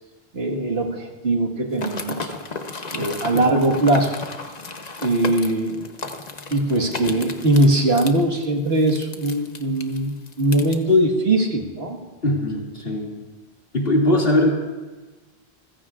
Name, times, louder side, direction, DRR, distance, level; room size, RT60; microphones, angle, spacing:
voice 1, 0.3-2.3 2.9-4.2 5.0-5.9 6.5-12.0, right 1 dB, 80° right, 0 dB, 1.9 m, -21 dB
sound 1, 1.7-10.8, left 3 dB, 45° left, 1.0 m, -34 dB
voice 2, 3.0-3.5 7.1-7.2 12.2-13.1 13.7-14.5, left 1 dB, 65° left, -2 dB, 2.6 m, -21 dB
28.5 x 15.5 x 2.5 m, 1.3 s
omnidirectional pair, 1.1 m